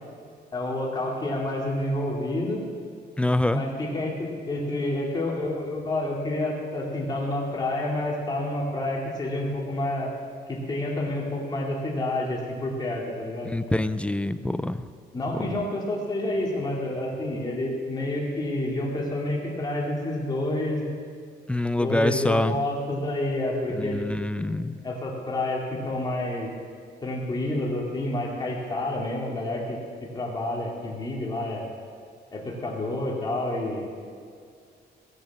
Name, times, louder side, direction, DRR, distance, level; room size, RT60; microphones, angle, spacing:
voice 1, 0.5-2.6 3.5-10.1 10.5-13.5 15.1-20.8 21.7-24.1 24.3-24.5 24.8-26.5 27.0-29.8 30.1-31.6 32.3-33.9, left 1 dB, 25° left, -2 dB, 2.5 m, -29 dB
voice 2, 3.2-3.6 13.5-14.9 21.5-22.6 23.8-24.8, left 1 dB, 5° left, 12 dB, 0.3 m, -25 dB
17.5 x 6.6 x 7.4 m, 2.2 s
wide cardioid pair, 180°, 18 cm